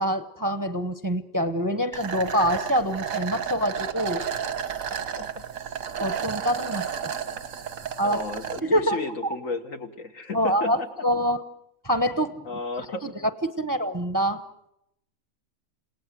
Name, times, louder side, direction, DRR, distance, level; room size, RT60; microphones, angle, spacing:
voice 1, 0.0-4.3 6.0-7.1 8.0-8.2 8.6-9.4 10.3-11.4 11.8-12.4 12.8-13.1 13.6-14.4, equal, 20° right, 11 dB, 0.7 m, -26 dB
sound 1, 1.9-8.6, right 8 dB, 90° right, 1.8 m, -32 dB
voice 2, 8.0-10.9 12.5-13.0, left 3 dB, 80° left, 5 dB, 2.1 m, -33 dB
29.0 x 18.0 x 7.7 m, 0.81 s
omnidirectional pair, 1.4 m